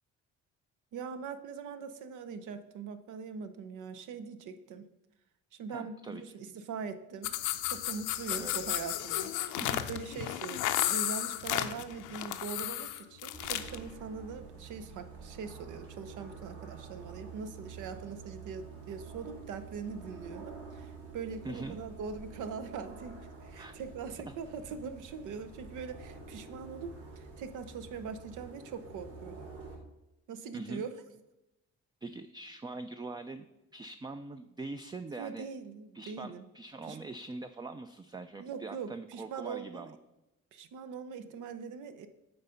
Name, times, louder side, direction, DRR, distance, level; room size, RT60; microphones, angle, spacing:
voice 1, 0.9-4.8 5.5-7.3 7.6-9.6 9.9-29.5 30.3-30.9 35.2-36.5 36.9-37.0 38.4-39.9 40.5-42.1, right 5 dB, 80° right, 9 dB, 0.7 m, -42 dB
voice 2, 5.7-6.2 8.4-8.5 9.5-9.9 10.2-10.3 21.4-21.8 23.6-23.7 24.3-24.4 30.5-30.8 32.0-33.5 33.7-35.5 35.9-40.0, right 3 dB, 15° right, 9 dB, 0.3 m, -43 dB
sound 1, 7.2-13.8, left 13 dB, 90° left, 0.6 m, -33 dB
sound 2, 13.3-29.8, right 4 dB, 55° right, 3.0 m, -48 dB
8.7 x 4.0 x 5.6 m, 0.94 s
cardioid pair, 90°, 30 cm